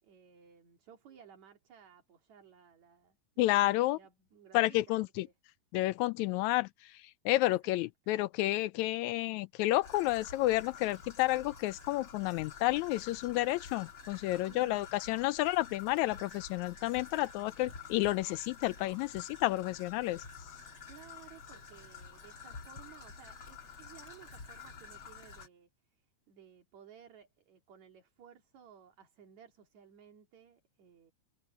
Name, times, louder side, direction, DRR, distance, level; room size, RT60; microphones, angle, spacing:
voice 1, 0.0-5.3 7.4-7.9 14.4-15.6 20.9-31.1, right 8 dB, 70° right, 3.7 m, -58 dB
voice 2, 3.4-4.0 4.5-5.3 5.7-6.7 7.3-20.2, left 17 dB, 80° left, 1.9 m, -30 dB
Traffic noise roadway noise / Trickle dribble, 9.8-25.5, left 5 dB, 45° left, 3.8 m, -49 dB
omnidirectional pair, 3.4 m